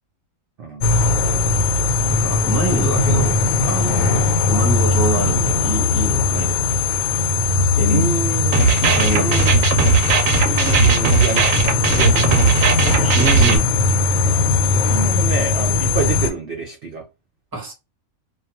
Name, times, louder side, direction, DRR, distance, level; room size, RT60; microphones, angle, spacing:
sound 1, 0.8-16.3, left 3 dB, 80° left, 1.0 m, -19 dB
voice 1, 2.0-6.7 7.7-8.4 8.8-9.5 13.0-13.7 17.5-17.7, right 1 dB, 20° right, 0.8 m, -26 dB
voice 2, 7.9-8.6 9.1-9.6 10.4-12.5 14.2-14.5 14.9-17.0, right 4 dB, 60° right, 0.6 m, -27 dB
sound 2, 8.5-13.6, right 5 dB, 80° right, 1.0 m, -17 dB
2.4 x 2.3 x 2.8 m
omnidirectional pair, 1.4 m